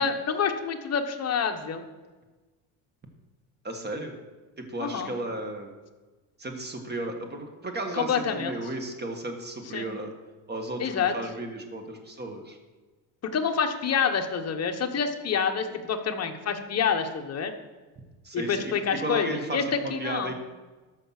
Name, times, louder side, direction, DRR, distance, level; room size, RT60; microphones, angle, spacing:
voice 1, 0.0-1.8 4.8-5.1 7.9-8.5 9.7-9.9 10.8-11.1 13.3-17.5 18.3-19.6 19.9-20.3, left 6 dB, 35° left, 5 dB, 1.1 m, -27 dB
voice 2, 3.6-4.2 4.6-5.7 6.4-10.1 10.5-12.6 18.2-18.7 19.0-20.3, right 1 dB, 20° right, 4 dB, 1.6 m, -34 dB
13.0 x 5.8 x 6.0 m, 1.3 s
cardioid pair, 125°, 45 cm